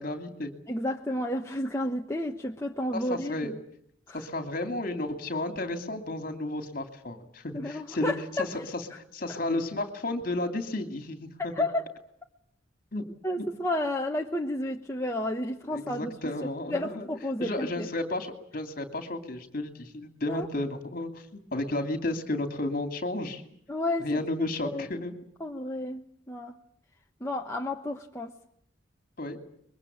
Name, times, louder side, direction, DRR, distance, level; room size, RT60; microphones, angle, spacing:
voice 1, 0.0-0.5 2.9-3.5 4.1-8.1 8.4-11.7 12.9-13.1 13.4-13.5 15.6-17.1 17.4-23.4 24.0-25.1 29.2-29.4, left 2 dB, 45° left, 7 dB, 2.8 m, -33 dB
voice 2, 0.7-3.5 4.1-4.2 7.5-8.5 9.3-9.4 11.5-11.9 13.2-16.2 16.7-17.9 20.3-20.5 23.7-24.1 24.6-25.0 25.4-26.6 27.2-28.3, left 1 dB, 15° left, 1 dB, 1.1 m, -31 dB
24.0 x 22.5 x 8.7 m, 0.65 s
head